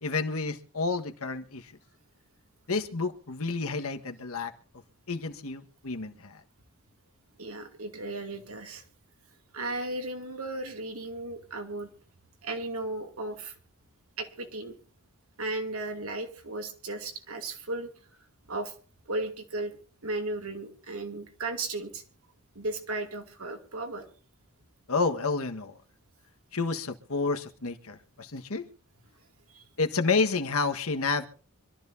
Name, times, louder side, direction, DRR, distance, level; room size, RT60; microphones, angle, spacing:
voice 1, 0.0-1.7 2.7-4.5 5.1-6.4 24.9-25.7 26.5-28.6 29.8-31.3, left 4 dB, 70° left, 7 dB, 1.5 m, -30 dB
voice 2, 7.4-8.8 9.5-11.9 12.4-13.5 14.2-14.7 15.4-17.9 18.5-18.7 19.1-19.8 20.0-22.0 22.5-24.1 29.5-29.7, right 2 dB, 75° right, 4 dB, 2.6 m, -35 dB
25.0 x 13.0 x 2.7 m, 0.41 s
head